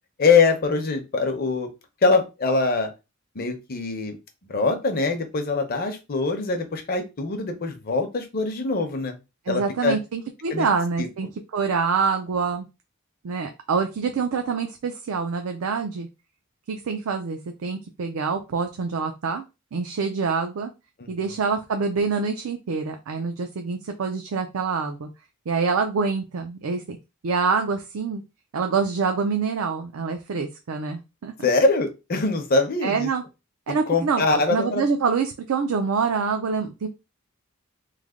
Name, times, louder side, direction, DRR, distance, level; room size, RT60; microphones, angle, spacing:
voice 1, 0.2-1.7 2.0-2.9 3.3-4.2 4.5-9.2 9.5-10.0 10.5-10.7 11.0-11.1 21.0-21.3 31.4-33.1 33.7-34.8, left 3 dB, 45° left, 6 dB, 0.7 m, -23 dB
voice 2, 9.5-11.3 11.5-12.6 13.2-16.1 16.7-19.4 19.7-20.7 21.1-25.1 25.5-27.0 27.2-28.2 28.5-31.5 32.8-33.2 33.7-36.9, right 5 dB, 75° right, 5 dB, 0.4 m, -26 dB
3.2 x 2.1 x 3.6 m, 0.26 s
head